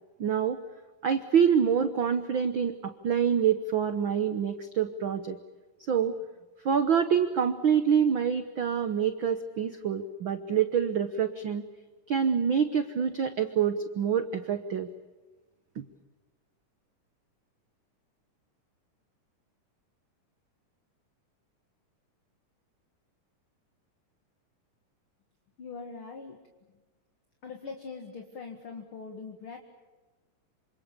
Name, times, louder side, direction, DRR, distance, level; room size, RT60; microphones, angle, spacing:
voice 1, 0.2-0.6 1.0-5.4 5.9-6.2 6.6-11.7 12.1-14.9 15.8-15.9, right 7 dB, 65° right, 9 dB, 1.2 m, -26 dB
voice 2, 25.6-26.4 27.4-29.6, left 4 dB, 45° left, 3 dB, 2.4 m, -42 dB
27.5 x 26.5 x 6.9 m, 1.2 s
omnidirectional pair, 3.7 m